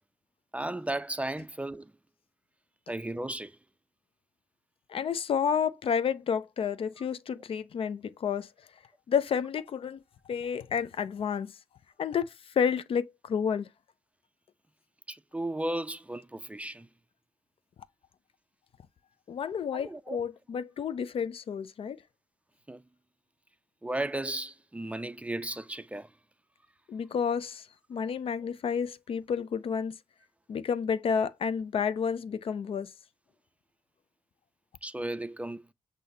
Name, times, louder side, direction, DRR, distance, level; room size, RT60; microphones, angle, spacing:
voice 1, 0.5-1.9 2.9-3.6 15.1-16.9 19.7-20.2 22.7-22.8 23.8-26.1 34.8-35.6, right 1 dB, 10° right, 0.4 m, -35 dB
voice 2, 4.9-8.5 9.1-10.0 10.3-11.5 12.0-13.7 19.3-22.0 26.9-30.0 30.5-32.9, left 7 dB, 60° left, 0.5 m, -30 dB
6.3 x 2.7 x 2.7 m
supercardioid pair, 45°, 11 cm